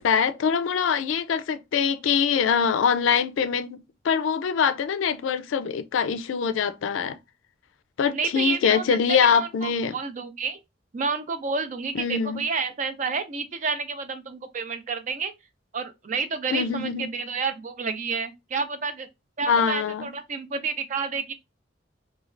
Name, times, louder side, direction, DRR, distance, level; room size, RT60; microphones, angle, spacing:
voice 1, 0.0-7.2 8.0-10.0 11.9-12.4 16.5-17.1 19.5-20.2, left 6 dB, 90° left, 0.4 m, -24 dB
voice 2, 8.1-8.8 9.1-10.6 10.9-15.3 15.7-19.1 19.4-21.3, right 5 dB, 40° right, 0.4 m, -30 dB
3.1 x 2.3 x 2.5 m
head